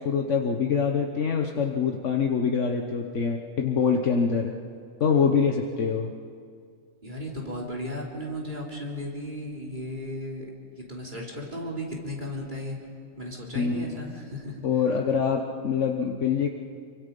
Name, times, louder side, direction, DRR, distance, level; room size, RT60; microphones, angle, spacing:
voice 1, 0.0-4.5 5.0-6.1 13.5-13.8 14.6-16.5, left 6 dB, 65° left, 3 dB, 1.4 m, -25 dB
voice 2, 7.0-10.5 10.8-12.8 13.2-14.9, left 1 dB, 35° right, -2 dB, 3.6 m, -35 dB
26.0 x 24.0 x 5.4 m, 2.2 s
omnidirectional pair, 1.4 m